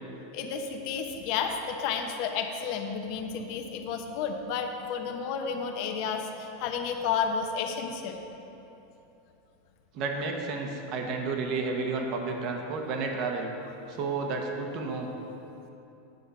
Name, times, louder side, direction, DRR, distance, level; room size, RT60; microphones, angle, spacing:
voice 1, 0.3-8.2, left 6 dB, 55° left, 4 dB, 0.9 m, -31 dB
voice 2, 9.9-13.5 13.9-15.1, right 4 dB, 50° right, 2 dB, 1.1 m, -31 dB
9.2 x 4.5 x 6.9 m, 2.9 s
supercardioid pair, 125°, 0 cm